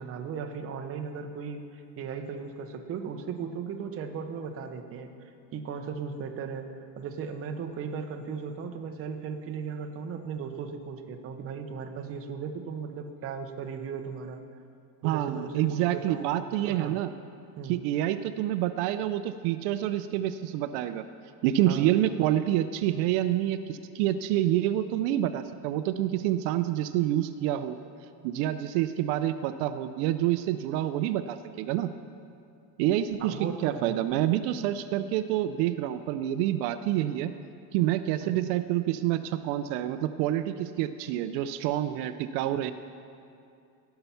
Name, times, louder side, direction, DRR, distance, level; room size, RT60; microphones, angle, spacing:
voice 1, 0.0-5.1 5.5-6.7 7.0-14.4 15.0-16.3 16.6-17.0 17.6-17.8 21.7-21.9 33.2-34.0 38.2-38.5, right 6 dB, 30° right, 5 dB, 0.7 m, -37 dB
voice 2, 15.0-17.1 17.6-21.0 21.4-27.8 28.2-31.9 32.8-37.3 37.7-42.7, right 12 dB, 70° right, 10 dB, 0.6 m, -27 dB
17.5 x 5.8 x 5.6 m, 2.5 s
cardioid pair, 155°, 49 cm